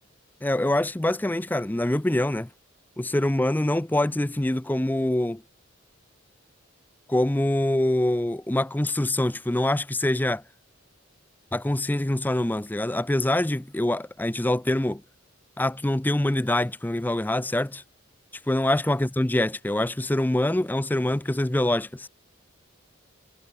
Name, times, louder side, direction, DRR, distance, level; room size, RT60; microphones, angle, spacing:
voice 1, 0.4-2.5 3.0-5.4 7.1-10.4 11.5-15.0 15.6-17.8 18.5-22.1, left 1 dB, 10° left, 0.4 m, -25 dB
head